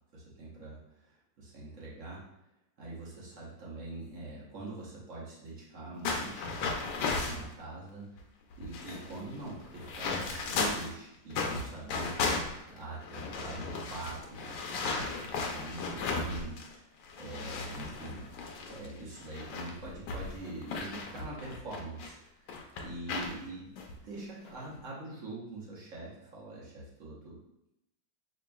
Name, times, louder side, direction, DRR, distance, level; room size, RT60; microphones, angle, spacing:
voice 1, 0.1-2.2 2.8-6.5 6.9-8.0 8.6-12.2 12.7-16.6 17.2-18.2 18.7-23.7 24.0-27.4, right 2 dB, 50° right, -5 dB, 1.3 m, -44 dB
sound 1, 6.0-7.5 8.2-8.3 8.5-10.9 11.3-16.7 17.0-22.1 22.5-23.3 23.8-23.9 24.5-24.7, left 4 dB, 85° left, 1.3 m, -35 dB
5.1 x 2.9 x 2.3 m, 0.82 s
omnidirectional pair, 2.0 m